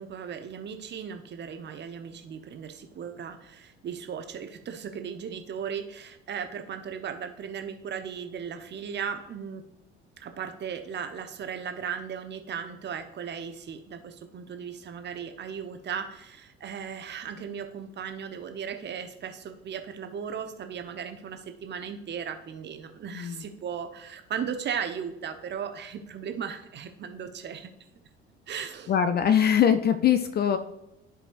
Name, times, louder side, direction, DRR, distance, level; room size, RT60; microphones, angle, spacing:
voice 1, 0.0-9.7 10.2-27.7 28.5-28.9, right 7 dB, 30° right, 7 dB, 0.9 m, -36 dB
voice 2, 28.9-30.6, left 9 dB, 30° left, 10 dB, 0.5 m, -22 dB
14.0 x 4.8 x 2.5 m, 0.87 s
figure-of-eight pair, 60°, 33 cm